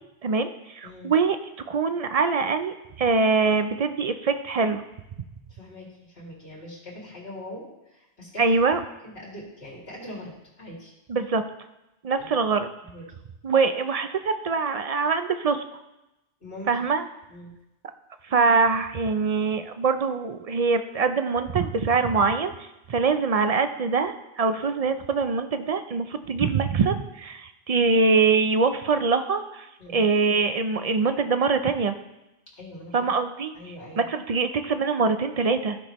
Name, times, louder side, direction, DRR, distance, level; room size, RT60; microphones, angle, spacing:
voice 1, 0.2-1.4 1.7-4.8 8.4-8.8 11.1-11.4 12.0-12.7 13.4-15.6 16.7-17.0 18.2-29.7 29.9-31.9 32.9-33.5 34.0-35.8, right 4 dB, 50° right, 9 dB, 0.4 m, -23 dB
voice 2, 0.8-1.1 5.5-8.5 9.0-10.9 12.2-12.4 12.8-13.0 16.4-16.8 17.3-17.5 29.8-30.1 32.6-33.1 33.5-34.1, left 1 dB, 65° left, -4 dB, 2.8 m, -42 dB
14.5 x 6.0 x 3.0 m, 0.94 s
omnidirectional pair, 1.1 m